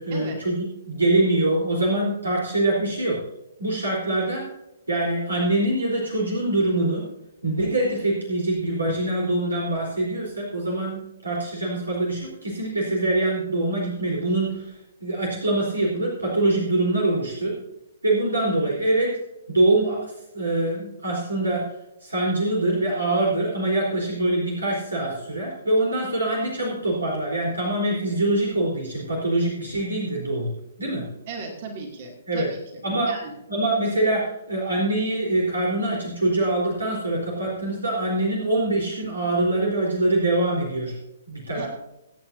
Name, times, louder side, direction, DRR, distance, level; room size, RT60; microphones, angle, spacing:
voice 1, 0.0-3.2 3.6-4.5 4.9-7.0 7.4-14.7 15.0-17.5 18.0-19.1 19.5-20.1 20.3-21.6 22.0-30.5 30.8-31.0 32.3-32.5 32.8-33.1 33.5-40.9 41.3-41.7, right 2 dB, 75° right, -3 dB, 4.0 m, -24 dB
voice 2, 31.3-32.6 33.1-33.3 41.5-41.7, right 4 dB, 40° right, 2 dB, 2.6 m, -36 dB
24.0 x 9.1 x 2.7 m, 0.92 s
figure-of-eight pair, 125°, 0 cm